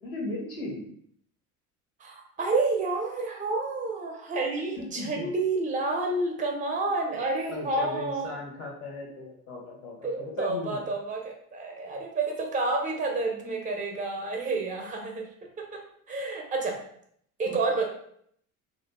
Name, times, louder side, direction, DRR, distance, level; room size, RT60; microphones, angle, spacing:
voice 1, 0.0-0.9 4.8-5.3 7.5-10.8 17.5-17.6, left 2 dB, 80° left, -2 dB, 1.0 m, -37 dB
voice 2, 2.0-8.2 10.0-15.3 15.6-15.8 16.1-16.8 17.4-17.8, right 3 dB, 15° right, 1 dB, 0.6 m, -29 dB
2.6 x 2.2 x 2.3 m, 0.66 s
hypercardioid pair, 70°, 45 cm